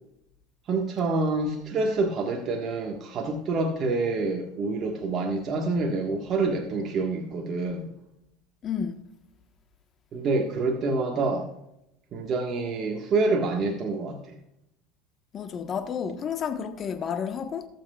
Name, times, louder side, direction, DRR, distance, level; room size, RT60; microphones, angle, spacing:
voice 1, 0.7-7.9 10.1-11.5 12.1-14.2, right 3 dB, 45° right, 1.5 m, -27 dB
voice 2, 8.6-9.0 15.3-17.7, left 7 dB, 40° left, 1.2 m, -31 dB
19.0 x 7.6 x 2.4 m
supercardioid pair, 100°, 0 cm